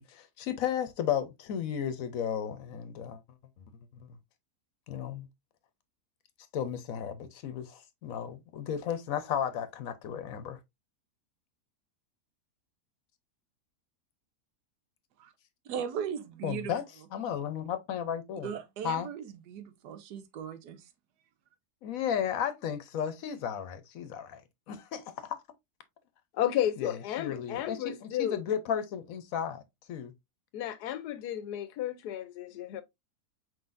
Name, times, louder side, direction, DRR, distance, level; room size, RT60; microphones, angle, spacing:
voice 1, 0.0-3.2 4.0-4.2 4.9-5.3 6.5-10.6 16.4-16.8 17.1-18.5 18.8-19.1 21.8-24.4 24.7-25.4 26.8-29.6 29.9-30.1, left 8 dB, 65° left, 1.0 m, -34 dB
voice 2, 15.6-16.7 18.4-20.9, right 8 dB, 85° right, 1.3 m, -38 dB
voice 3, 26.3-28.4 30.5-32.8, left 11 dB, 90° left, 1.2 m, -32 dB
4.5 x 3.9 x 2.5 m
omnidirectional pair, 1.7 m